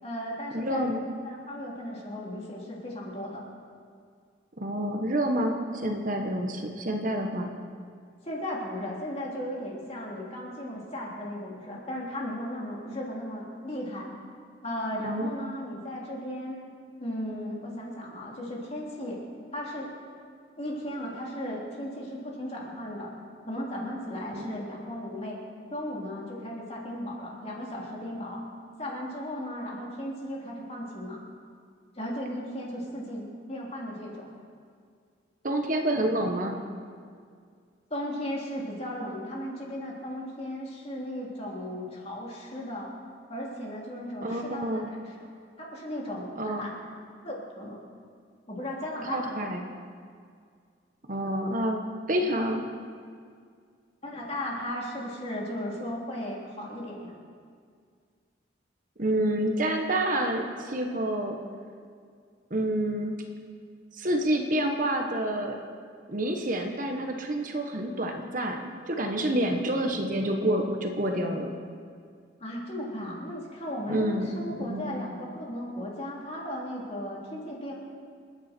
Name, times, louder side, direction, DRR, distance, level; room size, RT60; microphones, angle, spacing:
voice 1, 0.0-1.0 1.2-3.4 8.2-14.1 14.6-16.6 17.0-19.2 19.5-20.0 20.6-23.1 23.5-25.4 25.7-28.4 28.8-31.2 31.9-34.3 37.9-42.9 43.3-45.3 45.6-46.8 47.2-47.8 48.5-49.5 54.0-57.1 72.4-77.7, left 1 dB, 35° left, -3 dB, 3.3 m, -36 dB
voice 2, 0.5-1.0 4.6-7.5 15.0-15.3 24.4-24.5 35.4-36.6 44.2-44.9 46.4-46.6 49.0-49.6 51.1-51.8 52.1-52.6 59.0-61.4 62.5-63.1 63.9-65.5 66.1-68.6 68.9-71.5 73.9-74.3 74.5-74.9, right 1 dB, 45° right, 3 dB, 1.3 m, -28 dB
28.5 x 9.9 x 4.5 m, 2.1 s
head